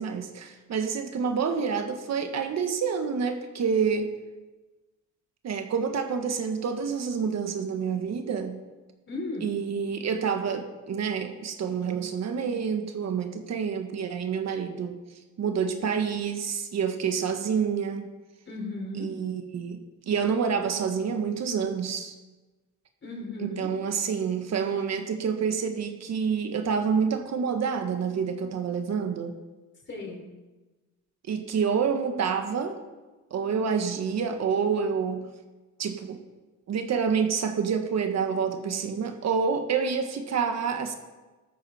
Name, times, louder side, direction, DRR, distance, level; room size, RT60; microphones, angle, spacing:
voice 1, 0.0-4.1 5.4-8.6 9.4-15.0 15.4-18.1 18.9-22.1 23.4-29.3 31.3-32.8 33.3-35.3 35.8-36.2 36.7-40.9, right 6 dB, 60° right, 6 dB, 1.5 m, -28 dB
voice 2, 9.1-9.5 18.5-19.1 23.0-23.7 29.9-30.2, left 2 dB, 40° left, -1 dB, 5.0 m, -35 dB
13.5 x 13.0 x 4.3 m, 1.2 s
cardioid pair, 90°, 30 cm